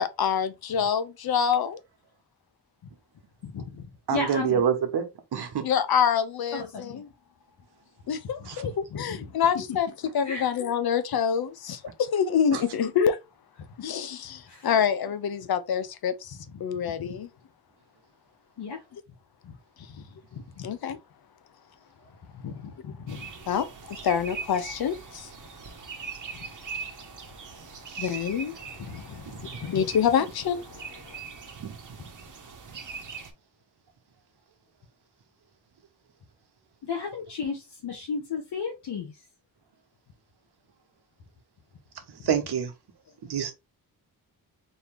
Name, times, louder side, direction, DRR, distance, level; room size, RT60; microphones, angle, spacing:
voice 1, 0.0-1.8 5.6-7.1 8.1-13.2 13.8-17.3 18.9-19.0 20.6-21.0 23.5-25.3 28.0-31.2, left 7 dB, 70° left, 0.7 m, -27 dB
voice 2, 3.4-4.6 6.5-7.0 8.4-9.2 10.2-10.5 14.5-14.7 17.1-17.2 18.6-18.8 19.4-19.5 20.0-20.1 20.3-20.7 22.4-23.3 28.9-29.8 36.8-39.2, left 5 dB, 85° left, 1.0 m, -35 dB
voice 3, 4.1-5.0 5.3-5.7 8.5-8.6 12.5-12.6 31.6-31.8 42.2-42.7 43.3-43.5, right 8 dB, 80° right, 1.1 m, -26 dB
sound 1, 23.1-33.3, right 5 dB, 50° right, 1.1 m, -41 dB
4.3 x 2.8 x 3.3 m
wide cardioid pair, 90°, 39 cm